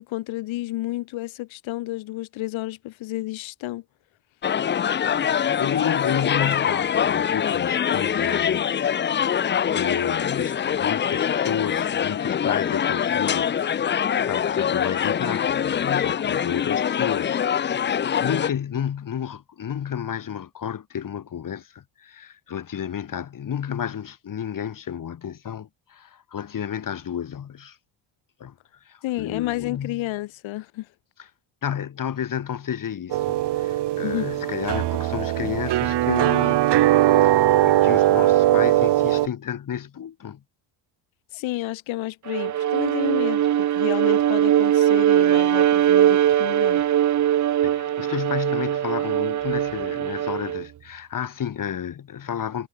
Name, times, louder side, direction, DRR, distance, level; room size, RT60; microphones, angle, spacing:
voice 1, 0.0-3.8 29.0-30.9 34.0-34.3 41.3-46.8, left 17 dB, 80° left, 5.9 m, -31 dB
sound 1, 4.4-18.5, left 8 dB, 25° left, 0.5 m, -24 dB
voice 2, 5.6-13.9 14.2-27.8 28.4-28.5 28.8-30.0 31.6-36.7 37.2-40.4 47.6-52.7, left 8 dB, 45° left, 2.5 m, -31 dB
sound 2, 33.1-39.3, right 14 dB, 65° right, 1.6 m, -20 dB
Bowed string instrument, 42.3-50.7, right 11 dB, 40° right, 0.7 m, -21 dB
cardioid pair, 100°, 46 cm